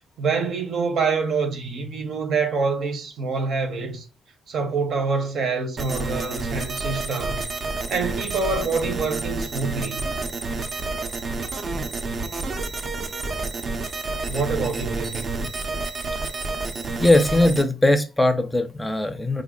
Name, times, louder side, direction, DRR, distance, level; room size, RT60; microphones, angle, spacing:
voice 1, 0.2-4.1 4.5-7.5 7.9-10.1 14.3-15.4, right 4 dB, 70° right, 0.9 m, -26 dB
sound 1, 5.8-17.6, right 3 dB, 45° right, 0.6 m, -29 dB
voice 2, 17.0-19.4, left 1 dB, 10° left, 0.5 m, -19 dB
3.7 x 2.0 x 3.7 m
cardioid pair, 95°, 0 cm